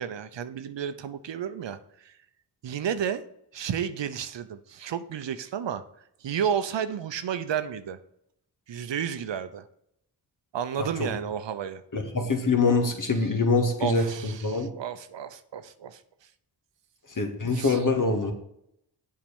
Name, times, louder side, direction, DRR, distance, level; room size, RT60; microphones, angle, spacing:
voice 1, 0.0-2.1 2.6-3.2 3.5-5.8 6.2-8.0 8.7-9.6 10.5-11.8 13.8-16.0 17.5-17.8, right 8 dB, 70° right, 11 dB, 0.8 m, -32 dB
voice 2, 10.8-11.1 11.9-14.7 17.1-18.3, left 3 dB, 45° left, 5 dB, 2.0 m, -25 dB
7.4 x 4.8 x 7.1 m, 0.75 s
cardioid pair, 45°, 45 cm